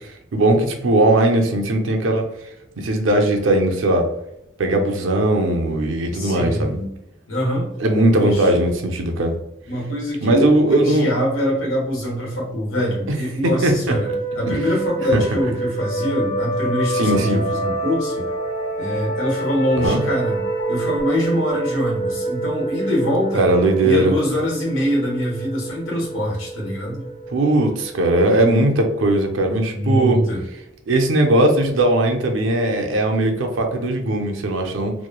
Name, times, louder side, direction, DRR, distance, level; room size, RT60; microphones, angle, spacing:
voice 1, 0.3-2.3 2.8-4.1 4.6-6.7 7.8-9.3 10.2-11.1 13.4-13.9 15.1-15.2 16.9-17.4 19.8-20.0 23.3-24.1 27.3-30.2 30.9-34.9, right 1 dB, 70° right, 3 dB, 0.5 m, -18 dB
voice 2, 6.1-6.9 7.3-7.7 8.2-8.6 9.7-18.3 18.8-20.4 20.7-23.5 23.8-27.1 29.7-30.4, equal, 80° left, -3 dB, 1.2 m, -24 dB
sound 1, 13.9-29.2, right 2 dB, 45° left, 0.5 m, -27 dB
3.0 x 2.1 x 2.2 m, 0.80 s
head